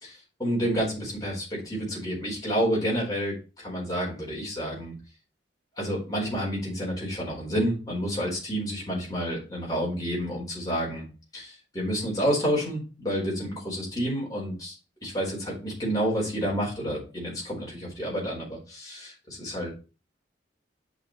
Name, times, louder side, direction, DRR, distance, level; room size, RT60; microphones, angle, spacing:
voice 1, 0.0-5.0 5.8-11.1 11.3-14.7 15.0-19.7, equal, 20° left, -5 dB, 4.4 m, -29 dB
8.5 x 5.3 x 3.2 m, 0.32 s
head